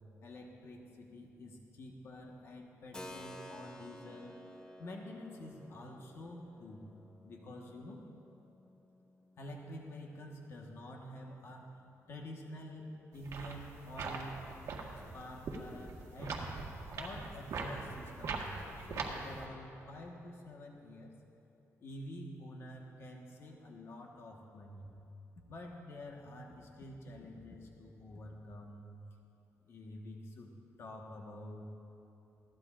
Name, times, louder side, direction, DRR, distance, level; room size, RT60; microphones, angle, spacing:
voice 1, 0.2-4.4 4.8-6.8 7.2-8.0 9.4-11.8 12.1-14.4 14.9-16.5 16.9-21.2 21.8-24.9 25.5-28.9 29.6-30.5 30.8-31.7, left 1 dB, 50° left, 1 dB, 1.4 m, -48 dB
Keyboard (musical), 2.9-11.5, left 1 dB, 15° left, 0.9 m, -54 dB
sound 1, 13.1-19.5, right 4 dB, 65° right, 1.5 m, -42 dB
21.0 x 15.5 x 2.5 m, 2.9 s
cardioid pair, 145°, 6 cm